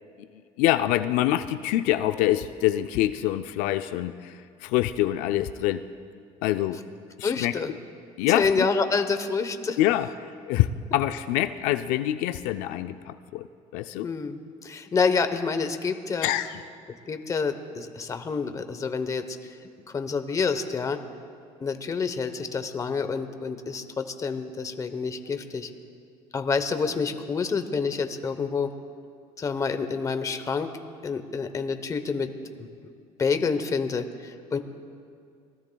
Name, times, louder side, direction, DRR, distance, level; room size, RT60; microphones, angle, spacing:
voice 1, 0.6-5.8 6.4-6.8 7.2-7.5 8.2-8.7 9.8-13.5 13.7-14.1 16.2-16.6, left 13 dB, 90° left, 10 dB, 0.5 m, -25 dB
voice 2, 7.2-7.7 8.3-9.8 14.0-16.3 17.1-19.5 19.9-21.0 21.6-25.7 26.3-28.7 29.4-30.7 31.0-32.3 33.2-34.6, left 5 dB, 25° left, 9 dB, 0.9 m, -28 dB
26.5 x 19.5 x 2.3 m, 2.3 s
cardioid pair, 135°, 13 cm